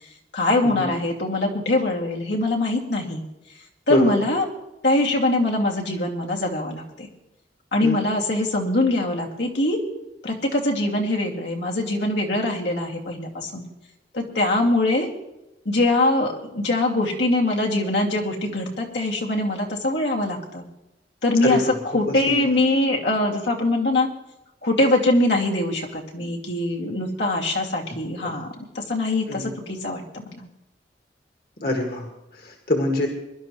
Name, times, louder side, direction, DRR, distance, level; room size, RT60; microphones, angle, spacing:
voice 1, 0.3-3.2 3.9-4.4 4.8-7.1 7.7-9.8 10.2-13.6 14.1-15.1 15.7-20.6 21.2-24.1 24.6-28.5 28.7-30.4, left 2 dB, 80° left, -1 dB, 2.4 m, -23 dB
voice 2, 3.9-4.2 7.8-8.0 21.4-21.6 22.3-22.4 28.2-28.4 29.3-29.4 31.6-32.1 32.4-33.1, left 1 dB, 55° left, 1 dB, 1.9 m, -24 dB
23.5 x 11.5 x 3.1 m, 0.94 s
head